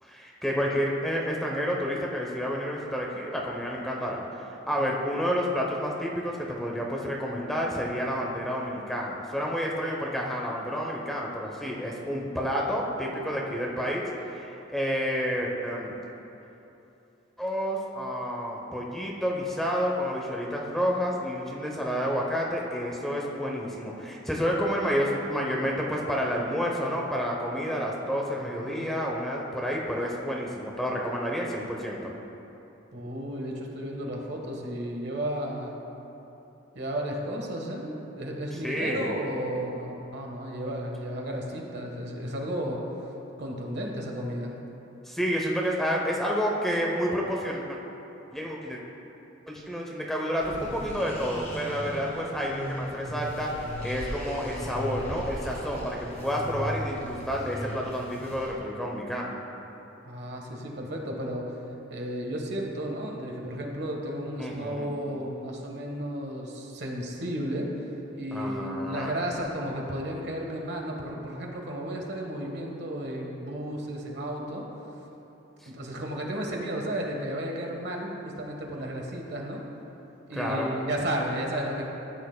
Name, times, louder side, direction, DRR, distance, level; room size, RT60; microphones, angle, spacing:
voice 1, 0.0-16.0 17.4-32.1 38.6-39.1 45.1-47.8 48.3-48.8 49.5-53.5 53.8-59.3 64.4-64.9 68.3-69.1 80.3-80.7, equal, ahead, -2 dB, 0.7 m, -30 dB
voice 2, 4.8-5.1 28.3-28.9 32.9-35.7 36.7-42.8 43.4-44.6 60.0-61.6 61.9-67.8 68.1-74.6 75.7-79.6 80.3-81.8, equal, 60° right, 0 dB, 1.3 m, -33 dB
sound 1, 50.4-58.5, equal, 35° left, 1.6 m, -37 dB
14.0 x 9.0 x 2.2 m, 3.0 s
head